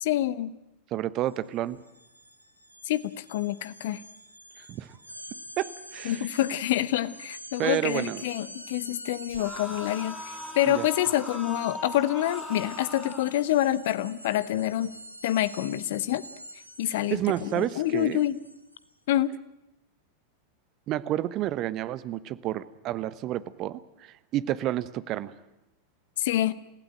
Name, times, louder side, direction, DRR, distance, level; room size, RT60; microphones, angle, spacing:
voice 1, 0.0-0.5 2.9-4.0 6.0-14.9 15.2-16.2 16.8-18.4 19.1-19.4 26.2-26.5, left 13 dB, 55° left, 16 dB, 1.0 m, -27 dB
voice 2, 0.9-1.8 4.6-5.0 5.3-6.3 7.6-8.2 10.7-10.8 17.1-18.2 20.9-25.3, right 13 dB, 35° right, 16 dB, 1.0 m, -30 dB
sound 1, 1.2-1.4 1.7-18.9, equal, 90° right, 1.4 m, -47 dB
sound 2, 9.3-13.3, left 1 dB, 5° left, 4.2 m, -39 dB
28.5 x 16.0 x 8.9 m, 0.92 s
figure-of-eight pair, 90°, 0 cm